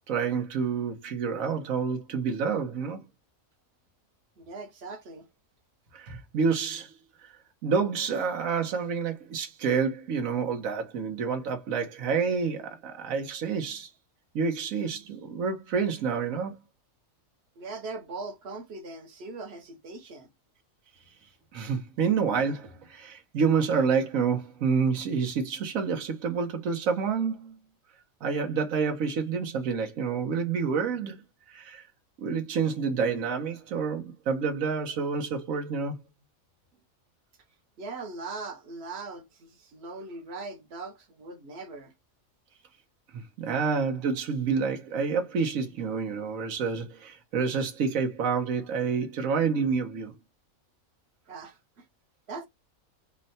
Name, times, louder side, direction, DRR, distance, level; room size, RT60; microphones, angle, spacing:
voice 1, 0.1-3.0 5.9-6.9 7.6-13.9 14.3-16.6 21.5-27.6 28.2-31.2 31.5-31.8 32.2-36.0 43.1-50.1, right 5 dB, 80° right, 1.3 m, -28 dB
voice 2, 4.4-5.3 17.6-20.3 37.8-41.9 51.3-51.9 52.3-52.5, right 3 dB, 55° right, 1.1 m, -40 dB
4.6 x 2.2 x 4.0 m
omnidirectional pair, 1.4 m